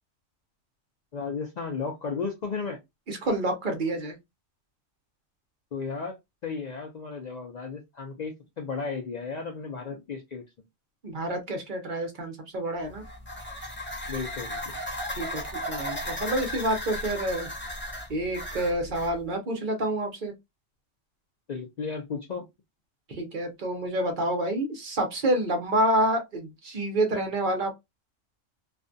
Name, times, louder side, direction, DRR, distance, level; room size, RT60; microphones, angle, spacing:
voice 1, 1.1-2.8 5.7-10.4 14.1-14.8 21.5-22.5, left 5 dB, 85° left, 0.3 m, -34 dB
voice 2, 3.1-4.2 11.0-13.0 15.2-17.5 18.1-20.3 23.1-27.7, right 1 dB, 45° right, 0.8 m, -28 dB
sound 1, 12.9-19.1, left 1 dB, 10° left, 0.7 m, -35 dB
2.5 x 2.2 x 2.5 m
omnidirectional pair, 1.3 m